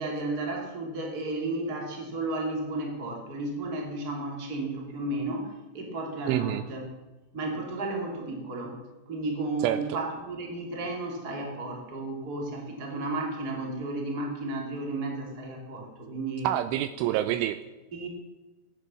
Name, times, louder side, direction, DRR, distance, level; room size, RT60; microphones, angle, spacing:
voice 1, 0.0-6.8 7.3-8.8 9.1-16.5 17.0-17.1 17.9-18.1, right 2 dB, 25° right, 1 dB, 2.5 m, -33 dB
voice 2, 6.3-6.7 9.6-9.8 16.4-17.6, right 13 dB, 85° right, 11 dB, 2.9 m, -27 dB
16.0 x 10.0 x 7.0 m, 1.1 s
omnidirectional pair, 5.8 m